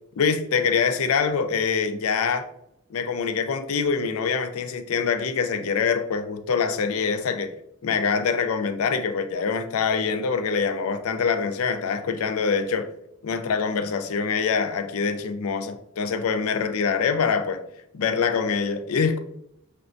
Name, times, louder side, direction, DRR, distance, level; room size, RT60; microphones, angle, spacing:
voice 1, 0.2-2.5 2.9-7.5 7.8-12.9 13.2-17.6 17.9-19.2, left 5 dB, 85° left, 0.4 m, -24 dB
5.8 x 2.2 x 2.5 m
head